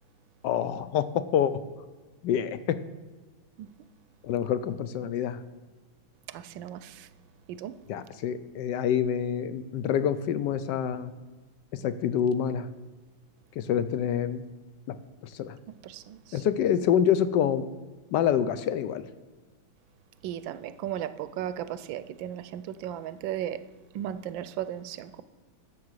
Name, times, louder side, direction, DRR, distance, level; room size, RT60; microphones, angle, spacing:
voice 1, 0.4-1.6 2.2-2.8 4.2-5.4 7.9-11.1 11.7-12.7 13.6-14.4 14.9-15.0 15.3-15.6 16.3-17.7 18.1-19.0, left 9 dB, 70° left, 13 dB, 1.1 m, -26 dB
voice 2, 6.3-7.1 7.5-7.7 15.8-16.4 20.2-23.6 23.9-25.2, right 11 dB, 75° right, 14 dB, 1.2 m, -36 dB
10.5 x 7.6 x 6.3 m, 1.3 s
omnidirectional pair, 2.2 m